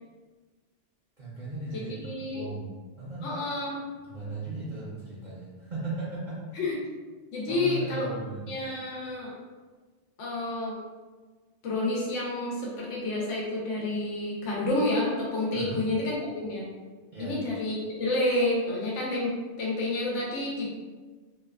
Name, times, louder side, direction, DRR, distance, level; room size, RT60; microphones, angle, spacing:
voice 1, 1.2-3.3 4.0-6.6 7.5-8.5 15.5-15.9 17.1-17.3, right 2 dB, 50° right, -9 dB, 0.6 m, -37 dB
voice 2, 1.7-2.4 3.2-3.8 6.5-6.8 7.3-8.1 8.5-9.3 10.2-10.8 11.6-16.7 17.2-19.3 19.6-20.7, left 2 dB, 80° left, -4 dB, 1.0 m, -29 dB
2.7 x 2.2 x 2.3 m, 1.4 s
omnidirectional pair, 1.2 m